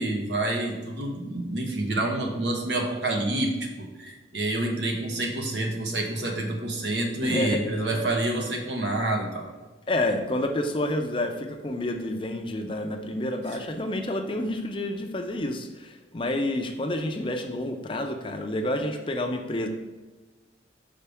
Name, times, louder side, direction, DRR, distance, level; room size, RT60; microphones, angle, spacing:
voice 1, 0.0-9.4 13.5-13.6, right 2 dB, 70° right, 2 dB, 1.1 m, -28 dB
voice 2, 7.2-8.1 9.9-19.7, left 1 dB, 25° left, 5 dB, 0.4 m, -29 dB
5.6 x 5.0 x 3.4 m, 1.2 s
head